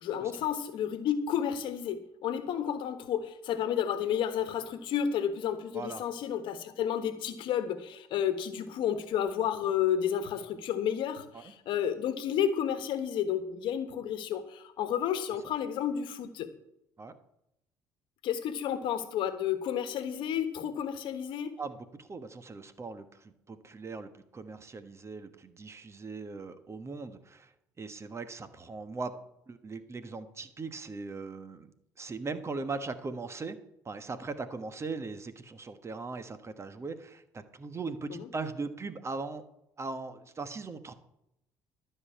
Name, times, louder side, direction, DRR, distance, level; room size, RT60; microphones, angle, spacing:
voice 1, 0.0-16.5 18.2-21.6 38.1-38.3, left 9 dB, 65° left, 11 dB, 1.3 m, -31 dB
voice 2, 21.6-27.5 27.8-29.1 29.5-33.6 33.8-39.4 39.8-40.9, right 4 dB, 30° right, 10 dB, 1.3 m, -39 dB
12.5 x 5.5 x 8.5 m, 0.82 s
hypercardioid pair, 65°, 9 cm